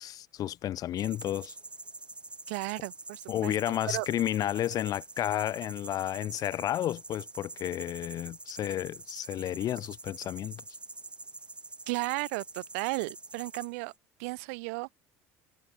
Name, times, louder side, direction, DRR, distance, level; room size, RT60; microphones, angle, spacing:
voice 1, 0.0-1.5 3.3-10.6, left 12 dB, 50° left, 2.9 m, -32 dB
sound 1, 1.0-14.0, right 2 dB, 15° right, 5.5 m, -46 dB
voice 2, 2.5-3.5 3.8-4.1 11.9-13.9 14.2-14.9, right 29 dB, 75° right, 4.2 m, -34 dB
supercardioid pair, 85°, 8 cm